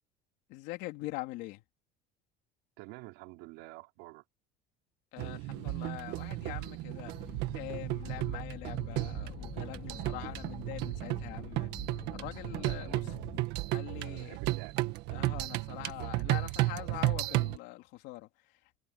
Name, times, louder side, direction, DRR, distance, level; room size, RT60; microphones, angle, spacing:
voice 1, 0.5-1.6 5.1-11.7 12.1-13.2 13.7-14.4 15.1-18.8, left 19 dB, 70° left, 3.5 m, -44 dB
voice 2, 2.8-4.2 12.8-13.0 14.0-14.7, right 23 dB, 85° right, 5.3 m, -48 dB
sound 1, 5.2-17.6, right 18 dB, 70° right, 1.7 m, -34 dB
sound 2, 7.1-13.4, left 9 dB, 35° left, 3.2 m, -47 dB
cardioid pair, 165°, 18 cm